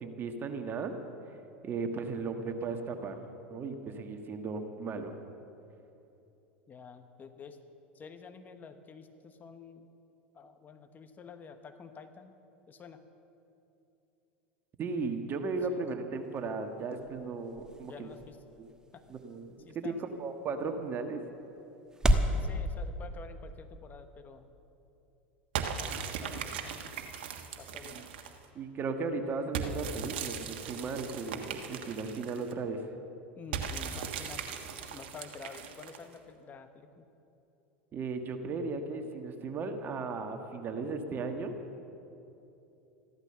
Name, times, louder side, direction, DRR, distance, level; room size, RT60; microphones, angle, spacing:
voice 1, 0.0-0.9 1.6-3.2 3.5-5.1 14.8-18.1 18.6-18.7 19.1-21.2 27.9-28.0 28.6-32.8 37.9-41.6, right 4 dB, 35° right, 5 dB, 1.7 m, -36 dB
voice 2, 6.7-7.6 7.9-9.9 10.3-12.3 12.7-13.0 15.7-15.8 17.8-18.4 18.9-19.0 19.6-20.1 22.4-24.5 25.7-27.0 27.6-28.1 33.4-34.5 34.9-37.1, left 5 dB, 30° left, 8 dB, 1.1 m, -49 dB
sound 1, 16.1-22.4, equal, 10° right, 1.2 m, -35 dB
sound 2, 25.5-28.4 29.5-32.5 33.5-36.2, right 7 dB, 70° right, 1.4 m, -38 dB
14.5 x 13.0 x 6.9 m, 2.9 s
hypercardioid pair, 90°, 6 cm